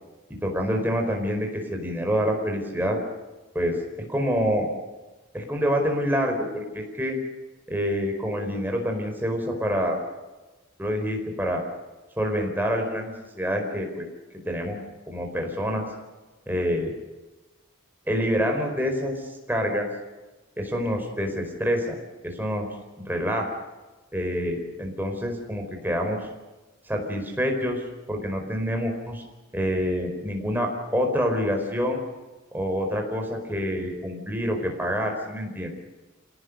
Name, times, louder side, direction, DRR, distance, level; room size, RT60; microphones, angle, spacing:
voice 1, 0.4-3.0 3.5-3.8 4.1-4.7 5.3-7.2 7.7-10.0 10.8-11.6 12.2-14.0 14.4-14.8 15.1-15.9 16.5-16.9 18.1-19.9 20.6-21.9 22.2-22.7 23.0-23.5 24.1-26.3 26.9-29.2 29.5-32.0 32.5-35.7, equal, 10° right, 2 dB, 4.8 m, -27 dB
27.5 x 18.0 x 6.7 m, 1.2 s
head